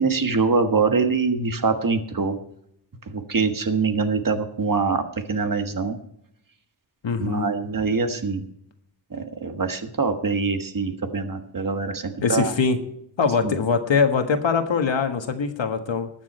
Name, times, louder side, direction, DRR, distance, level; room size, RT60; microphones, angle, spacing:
voice 1, 0.0-2.4 3.1-6.0 7.2-8.4 9.1-12.5 13.4-13.6, right 4 dB, 45° right, 7 dB, 1.5 m, -24 dB
voice 2, 7.0-7.5 12.2-12.8 13.2-16.1, left 5 dB, 85° left, 6 dB, 1.6 m, -22 dB
19.5 x 7.4 x 4.3 m, 0.74 s
wide cardioid pair, 120°, 44 cm